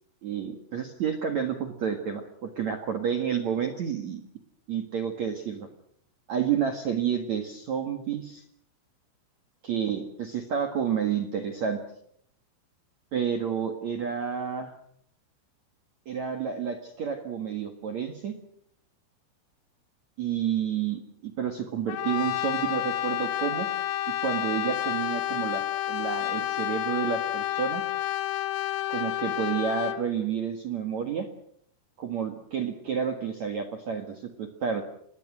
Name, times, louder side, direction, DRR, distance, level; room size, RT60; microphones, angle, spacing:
voice 1, 0.2-4.2 4.7-5.7 6.3-8.4 9.6-11.8 13.1-14.7 16.1-18.4 20.2-23.7 24.2-27.8 28.9-31.3 32.0-34.8, right 8 dB, 65° right, 5 dB, 1.8 m, -30 dB
Brass instrument, 21.9-30.1, left 14 dB, 85° left, 3.9 m, -30 dB
27.0 x 20.5 x 6.2 m, 0.67 s
omnidirectional pair, 5.9 m